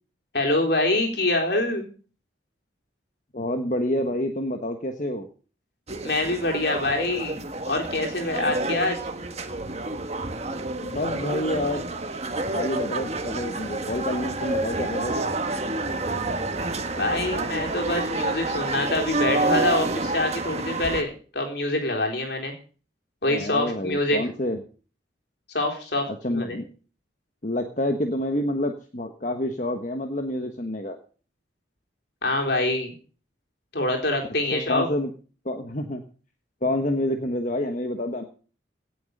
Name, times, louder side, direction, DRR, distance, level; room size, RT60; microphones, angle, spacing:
voice 1, 0.3-1.9 6.0-7.4 7.7-9.0 17.0-22.5 23.2-24.2 25.5-26.6 32.2-32.9 33.7-34.9, left 2 dB, 55° left, 2 dB, 4.0 m, -25 dB
voice 2, 3.3-5.3 10.8-11.8 12.5-15.2 23.3-24.6 26.1-26.7 27.4-31.0 34.5-35.1 35.4-36.0 36.6-38.2, left 1 dB, 40° left, 5 dB, 1.3 m, -28 dB
sound 1, 5.9-21.0, right 2 dB, 35° right, 1.5 m, -29 dB
17.5 x 7.8 x 6.6 m, 0.40 s
head